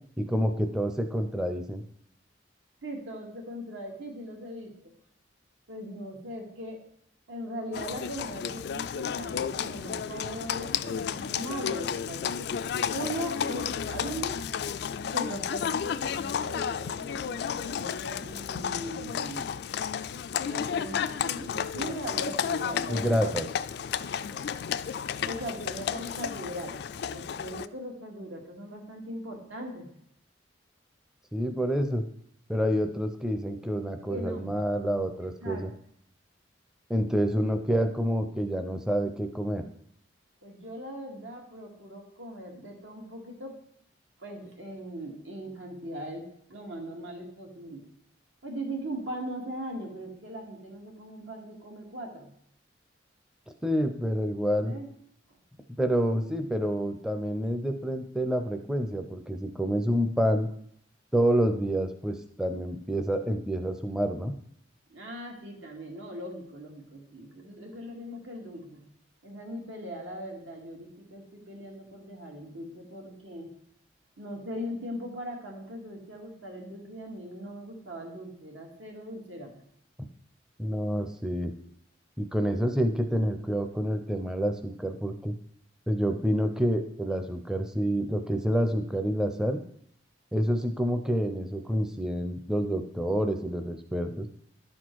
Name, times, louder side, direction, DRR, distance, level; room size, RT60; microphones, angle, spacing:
voice 1, 0.2-1.8 22.9-23.4 31.3-32.0 32.5-35.7 36.9-39.6 53.6-54.7 55.8-60.5 61.1-64.3 80.6-81.5 82.2-85.3 85.9-89.6 90.3-94.3, equal, 5° right, 6 dB, 0.5 m, -28 dB
voice 2, 2.8-4.7 5.7-6.8 7.3-12.6 12.9-14.5 15.1-19.5 20.4-23.3 23.9-24.5 25.2-29.9 34.1-34.5 35.2-35.7 37.5-37.6 40.4-43.6 44.2-47.9 48.4-52.3 54.7-54.9 64.9-68.9 69.2-73.5 74.2-79.6, equal, 85° right, 0 dB, 2.1 m, -39 dB
Livestock farm animals working animals, 7.7-27.7, left 8 dB, 60° left, 0.3 m, -32 dB
11.5 x 4.3 x 4.6 m, 0.67 s
head